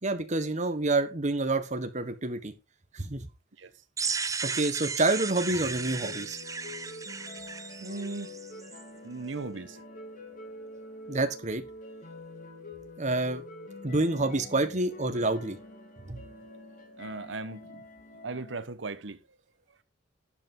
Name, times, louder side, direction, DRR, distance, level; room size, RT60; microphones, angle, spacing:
voice 1, 0.0-2.5 2.9-3.2 4.5-6.4 11.1-11.6 13.0-13.4 13.8-15.6 16.1-16.2, right 2 dB, 40° right, 1.4 m, -28 dB
sound 1, 4.0-8.8, right 5 dB, 20° right, 0.6 m, -35 dB
sound 2, 5.4-18.6, left 2 dB, 45° left, 2.4 m, -46 dB
voice 2, 7.8-8.3 9.0-9.8 17.0-17.9 18.2-19.2, right 3 dB, 70° right, 1.0 m, -37 dB
12.0 x 8.2 x 3.8 m
head